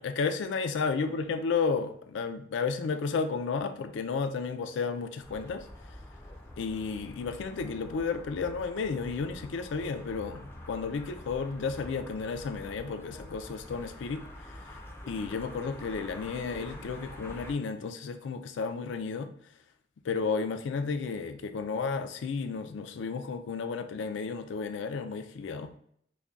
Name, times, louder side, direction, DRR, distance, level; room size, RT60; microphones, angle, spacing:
voice 1, 0.0-5.9 6.6-14.8 15.1-19.3 20.0-25.7, left 5 dB, 80° left, 8 dB, 0.4 m, -32 dB
sound 1, 5.2-17.5, left 1 dB, 10° left, 0.4 m, -46 dB
5.2 x 2.1 x 2.4 m, 0.66 s
head